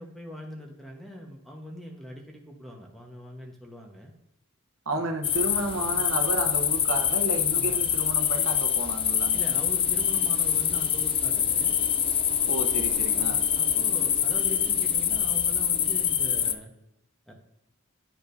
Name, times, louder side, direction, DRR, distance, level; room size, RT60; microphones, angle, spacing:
voice 1, 0.0-4.1 4.9-5.1 7.5-7.8 9.3-11.8 13.2-16.7 17.3-17.4, equal, ahead, 0 dB, 1.1 m, -42 dB
voice 2, 4.9-9.4 12.5-13.4, right 2 dB, 80° right, 3 dB, 1.0 m, -32 dB
sound 1, 5.2-16.6, left 8 dB, 25° left, 0.3 m, -25 dB
10.0 x 4.9 x 2.6 m, 0.84 s
head